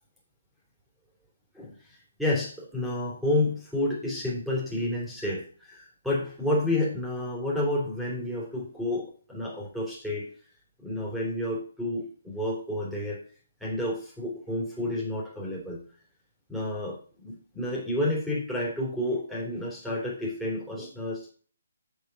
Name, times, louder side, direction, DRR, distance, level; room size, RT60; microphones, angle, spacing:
voice 1, 1.5-10.3 10.8-13.2 13.6-15.8 16.5-21.3, left 1 dB, ahead, -5 dB, 3.0 m, -30 dB
7.3 x 7.1 x 3.9 m, 0.42 s
figure-of-eight pair, 140°, 0 cm